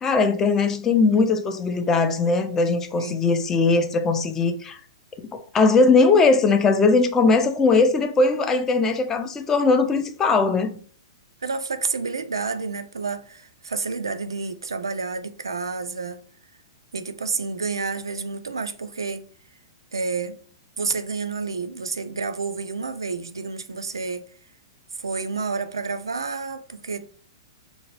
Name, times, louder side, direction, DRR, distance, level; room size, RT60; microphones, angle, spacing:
voice 1, 0.0-4.8 5.3-10.8, left 4 dB, 15° left, 0.3 m, -20 dB
voice 2, 11.4-16.2 16.9-19.3 19.9-20.4 20.8-24.2 25.0-27.0, right 4 dB, 70° right, 0.3 m, -29 dB
2.8 x 2.0 x 3.1 m
figure-of-eight pair, 110°, 2 cm